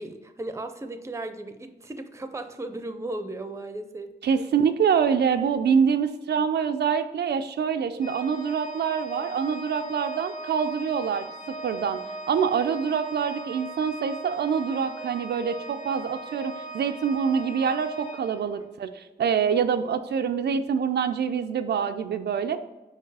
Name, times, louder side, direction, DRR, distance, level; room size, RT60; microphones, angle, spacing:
voice 1, 0.0-4.5 18.6-18.7, right 2 dB, 15° right, 8 dB, 0.5 m, -36 dB
voice 2, 4.2-11.3 11.6-12.0 12.3-18.9 19.2-22.6, right 7 dB, 75° right, 8 dB, 0.4 m, -25 dB
Organ, 8.0-18.9, right 3 dB, 30° left, 1.1 m, -38 dB
4.7 x 4.7 x 4.7 m, 1.1 s
wide cardioid pair, 110°, 18 cm